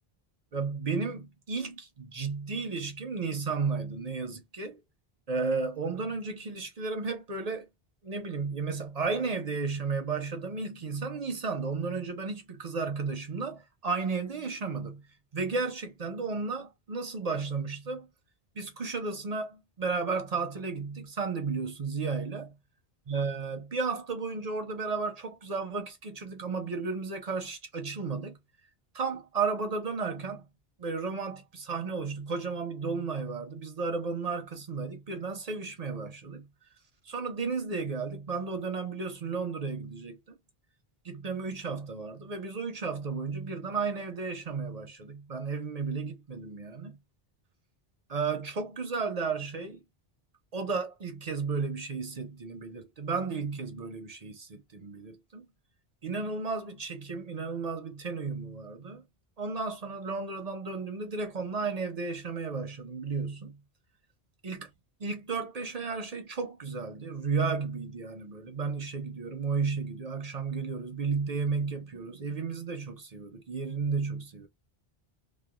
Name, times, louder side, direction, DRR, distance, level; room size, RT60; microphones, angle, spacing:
voice 1, 0.5-4.8 5.3-7.7 8.0-15.1 15.3-18.1 18.6-22.5 23.1-28.4 28.9-30.5 30.8-36.5 37.0-40.4 41.0-47.0 48.1-49.8 50.5-55.5 56.0-59.0 59.4-63.6 64.4-64.7 65.0-74.5, right 4 dB, 50° right, 0.5 m, -33 dB
2.8 x 2.1 x 2.2 m
omnidirectional pair, 1.0 m